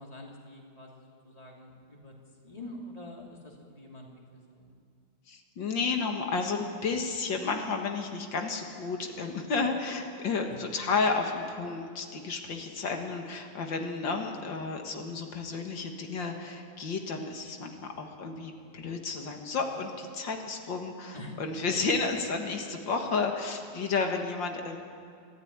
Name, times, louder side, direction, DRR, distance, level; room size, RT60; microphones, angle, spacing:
voice 1, 0.0-2.1 2.4-4.7 10.5-10.6 21.1-21.6, left 1 dB, 20° left, 0 dB, 2.9 m, -46 dB
voice 2, 5.3-24.8, left 4 dB, 80° left, 4 dB, 2.4 m, -32 dB
23.5 x 14.5 x 9.8 m, 2.3 s
omnidirectional pair, 2.0 m